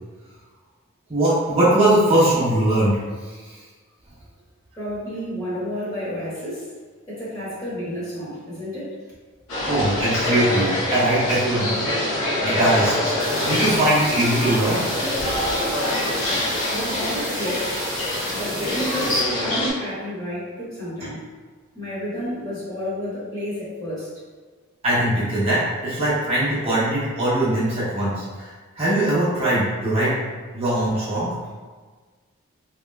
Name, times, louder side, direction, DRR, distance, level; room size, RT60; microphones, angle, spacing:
voice 1, 1.1-3.6 9.6-11.8 12.4-13.2 13.4-14.8 21.0-21.1 24.8-30.1 30.5-31.3, right 1 dB, 30° right, -10 dB, 0.8 m, -21 dB
voice 2, 4.7-6.7 7.1-9.0 16.7-17.8 18.3-21.2 21.7-24.1, equal, 15° left, -10 dB, 1.2 m, -30 dB
sound 1, 9.5-19.7, left 1 dB, 85° left, 1.0 m, -25 dB
sound 2, 13.2-19.2, right 2 dB, 10° right, 0.4 m, -35 dB
3.5 x 2.9 x 2.3 m, 1.4 s
head